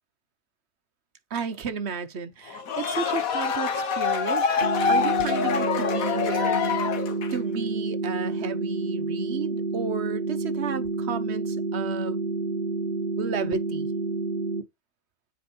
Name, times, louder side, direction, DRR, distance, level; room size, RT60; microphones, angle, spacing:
voice 1, 1.3-4.5 4.9-6.9 7.3-12.2 13.2-13.9, right 6 dB, 55° right, 0.9 m, -33 dB
sound 1, 2.5-7.5, left 6 dB, 65° left, 1.5 m, -25 dB
sound 2, 4.6-14.6, right 3 dB, 35° right, 1.3 m, -29 dB
9.5 x 4.8 x 4.3 m
omnidirectional pair, 1.6 m